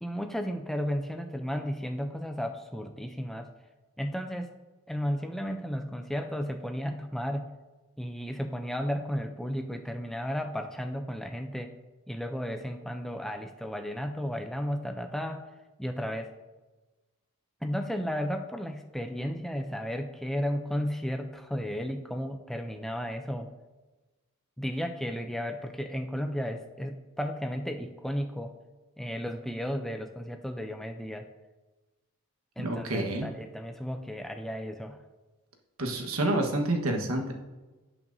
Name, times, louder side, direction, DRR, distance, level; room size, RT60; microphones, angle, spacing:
voice 1, 0.0-3.5 4.0-4.5 4.9-7.5 8.0-11.7 12.1-15.5 15.8-16.3 17.6-23.5 24.6-28.5 29.0-31.3 32.6-35.0, equal, ahead, 5 dB, 0.4 m, -34 dB
voice 2, 32.6-33.3 35.8-37.3, right 1 dB, 80° right, 2 dB, 1.4 m, -28 dB
17.0 x 5.8 x 2.7 m, 1.2 s
head